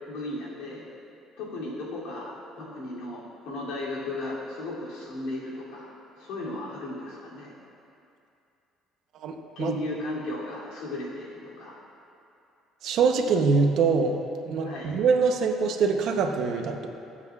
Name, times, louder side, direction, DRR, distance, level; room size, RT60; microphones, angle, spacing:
voice 1, 0.1-0.8 1.4-5.9 6.2-7.5 9.6-11.7 14.6-14.9, left 2 dB, 85° left, -6 dB, 2.7 m, -35 dB
voice 2, 9.1-9.8 12.8-14.2 14.5-16.9, right 5 dB, 50° right, 4 dB, 0.7 m, -24 dB
21.0 x 7.8 x 2.4 m, 2.7 s
cardioid pair, 170°, 0 cm